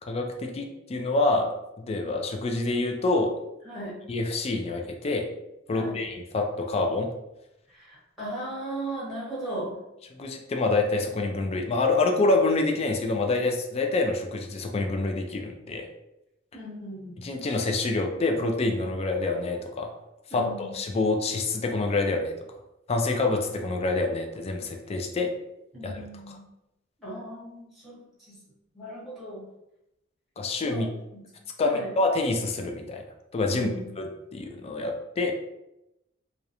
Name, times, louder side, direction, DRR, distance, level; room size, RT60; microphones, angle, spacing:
voice 1, 0.0-1.5 1.9-3.3 4.1-5.3 5.7-7.1 10.2-15.9 17.2-19.9 20.3-22.3 22.9-25.3 25.8-26.4 30.4-30.9 31.6-33.0 33.3-33.7 34.0-35.3, left 3 dB, 30° left, 3 dB, 0.3 m, -27 dB
voice 2, 7.7-9.7 16.5-17.2 20.3-20.7 25.7-26.4 27.0-28.4 28.7-29.5 30.6-31.2 31.6-31.9 33.5-33.9, right 1 dB, ahead, -9 dB, 1.1 m, -37 dB
2.4 x 2.1 x 2.8 m, 0.89 s
head